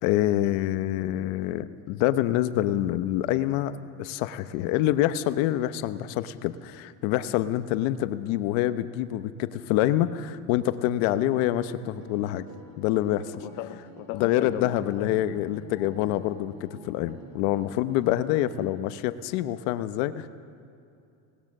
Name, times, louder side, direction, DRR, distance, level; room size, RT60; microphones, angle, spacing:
voice 1, 0.0-3.7 4.0-12.5 12.8-13.4 14.1-20.3, left 13 dB, 80° left, 11 dB, 1.1 m, -26 dB
sound 1, 11.3-18.7, right 3 dB, 70° right, 6.7 m, -48 dB
voice 2, 13.4-15.1, left 14 dB, 55° left, 10 dB, 0.8 m, -37 dB
22.5 x 19.0 x 6.7 m, 2.5 s
cardioid pair, 135°, 38 cm